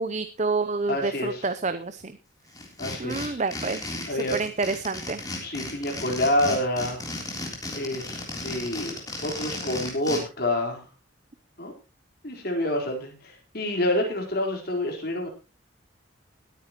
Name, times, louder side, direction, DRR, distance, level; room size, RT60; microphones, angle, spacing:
voice 1, 0.0-2.0 3.0-3.8 4.1-5.2, right 3 dB, 35° right, 11 dB, 0.7 m, -28 dB
voice 2, 0.9-1.5 2.8-3.4 4.1-4.4 5.4-7.0 7.7-10.8 11.6-11.7 12.2-15.3, left 1 dB, 50° left, 1 dB, 4.3 m, -28 dB
sound 1, 2.5-10.2, left 2 dB, 20° left, 3.5 m, -34 dB
20.5 x 9.4 x 3.0 m, 0.31 s
head